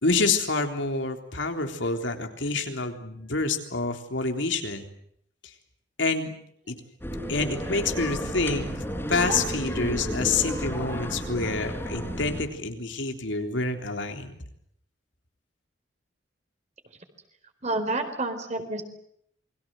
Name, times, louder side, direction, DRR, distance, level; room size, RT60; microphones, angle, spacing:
voice 1, 0.0-4.8 6.0-6.3 6.7-6.8 7.3-8.7 9.1-14.4, left 3 dB, 80° left, 5 dB, 3.6 m, -27 dB
sound 1, 7.0-12.4, equal, 10° left, 4.4 m, -32 dB
voice 2, 17.6-18.8, right 2 dB, 40° right, 7 dB, 4.5 m, -29 dB
28.5 x 22.5 x 7.9 m, 0.69 s
head